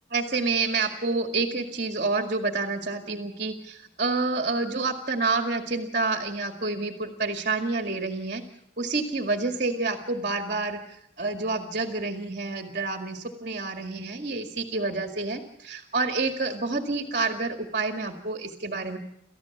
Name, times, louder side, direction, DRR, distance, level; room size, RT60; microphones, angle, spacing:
voice 1, 0.1-8.4 8.8-19.0, right 3 dB, 45° right, 5 dB, 2.1 m, -28 dB
29.5 x 14.5 x 7.2 m, 0.80 s
head